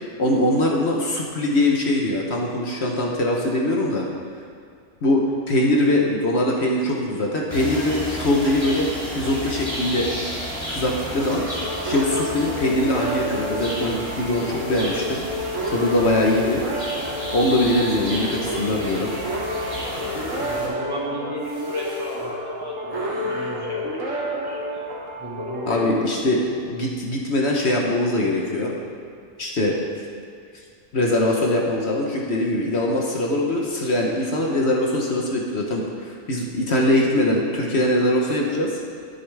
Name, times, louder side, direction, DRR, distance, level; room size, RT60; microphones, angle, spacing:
voice 1, 0.2-4.1 5.0-5.2 5.5-8.9 9.2-10.1 10.7-11.4 11.8-15.2 15.7-16.6 17.3-19.1 25.7-28.7 29.4-29.7 30.9-38.7, left 1 dB, 60° left, -1 dB, 1.3 m, -22 dB
sound 1, 7.5-20.7, equal, 50° right, 3.0 m, -32 dB
sound 2, 11.5-26.9, equal, 75° right, 1.8 m, -30 dB
sound 3, 19.8-20.8 21.4-22.3 22.9-23.7, equal, 35° left, 3.1 m, -40 dB
voice 2, 20.4-24.8 25.2-26.0 26.4-26.5, equal, 20° right, -5 dB, 1.6 m, -33 dB
11.5 x 9.7 x 3.5 m, 2.2 s
omnidirectional pair, 1.3 m